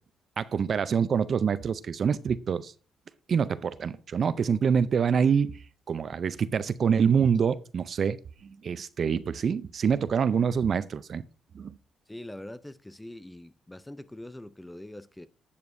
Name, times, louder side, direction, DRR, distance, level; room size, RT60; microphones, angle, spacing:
voice 1, 0.4-2.7 3.3-5.6 5.9-8.2 8.4-11.2 11.5-11.7, right 6 dB, 50° right, 0.5 m, -26 dB
voice 2, 12.1-15.3, left 1 dB, 10° left, 0.5 m, -43 dB
9.4 x 8.2 x 2.6 m
cardioid pair, 90°, 0 cm